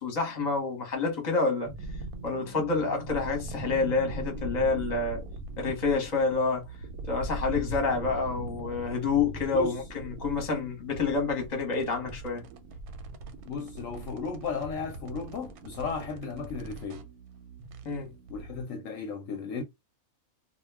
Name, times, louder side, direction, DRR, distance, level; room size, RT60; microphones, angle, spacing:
voice 1, 0.0-1.7 2.2-5.2 5.6-6.7 7.1-12.4 17.8-18.1, left 4 dB, 35° left, 0.9 m, -28 dB
sound 1, 1.6-18.6, right 2 dB, 85° right, 1.1 m, -40 dB
voice 2, 13.5-17.0 18.3-19.6, left 5 dB, 70° left, 0.9 m, -35 dB
2.3 x 2.2 x 3.2 m
omnidirectional pair, 1.5 m